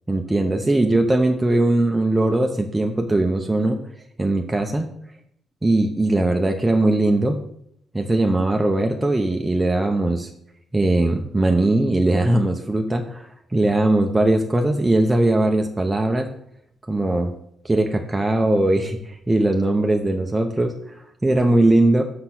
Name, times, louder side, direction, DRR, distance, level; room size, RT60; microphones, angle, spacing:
voice 1, 0.1-3.8 4.2-4.9 5.6-7.4 7.9-10.3 10.7-16.3 16.9-17.3 17.6-22.0, right 2 dB, 15° right, 3 dB, 0.8 m, -20 dB
6.0 x 5.7 x 5.9 m, 0.72 s
cardioid pair, 90°, 0 cm